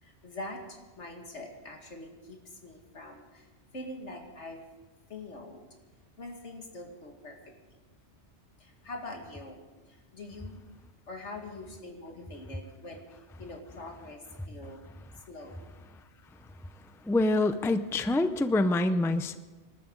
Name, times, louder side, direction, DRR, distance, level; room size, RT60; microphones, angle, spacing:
voice 1, 0.0-3.5 3.7-4.6 5.1-5.6 6.2-7.7 8.6-9.6 9.9-10.6 11.1-14.8 15.3-15.6, left 2 dB, 90° left, 2 dB, 2.5 m, -44 dB
voice 2, 17.0-19.4, left 2 dB, 5° left, 11 dB, 0.3 m, -26 dB
27.0 x 12.5 x 3.9 m, 1.3 s
omnidirectional pair, 1.2 m